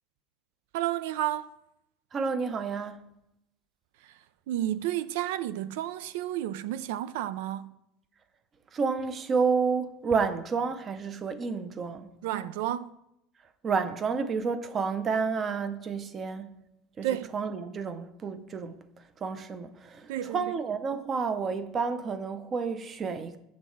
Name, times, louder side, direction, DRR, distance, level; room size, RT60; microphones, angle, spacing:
voice 1, 0.7-1.5 4.0-7.7 12.2-13.0 17.0-17.3 20.1-20.5, right 13 dB, 80° right, 0.3 m, -32 dB
voice 2, 2.1-3.0 8.7-12.1 13.6-16.6 17.0-17.1 17.3-18.8 19.2-23.4, right 5 dB, 20° right, 0.5 m, -30 dB
7.4 x 7.1 x 4.6 m
cardioid pair, 170°, 0 cm